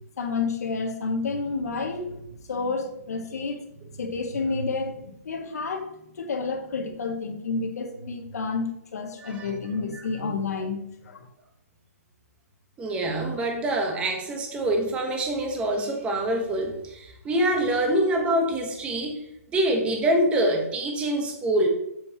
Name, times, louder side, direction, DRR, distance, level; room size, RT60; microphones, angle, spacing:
voice 1, 0.2-11.3, left 4 dB, 70° left, 3 dB, 1.7 m, -30 dB
voice 2, 12.8-19.2 19.5-21.7, right 1 dB, 10° right, 3 dB, 1.1 m, -25 dB
7.9 x 6.8 x 3.0 m, 0.79 s
hypercardioid pair, 150°, 9 cm